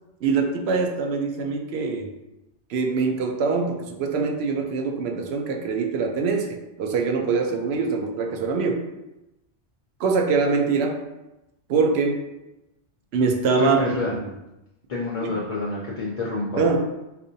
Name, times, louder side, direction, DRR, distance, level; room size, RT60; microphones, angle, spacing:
voice 1, 0.2-2.1 2.7-8.9 10.0-11.0 11.7-12.2 13.1-13.8 14.2-14.3 15.2-15.3 16.6-16.8, right 4 dB, 70° right, 3 dB, 0.8 m, -23 dB
voice 2, 13.6-14.1 14.9-16.8, left 2 dB, 50° left, -4 dB, 0.4 m, -27 dB
4.1 x 2.5 x 2.7 m, 0.94 s
omnidirectional pair, 1.2 m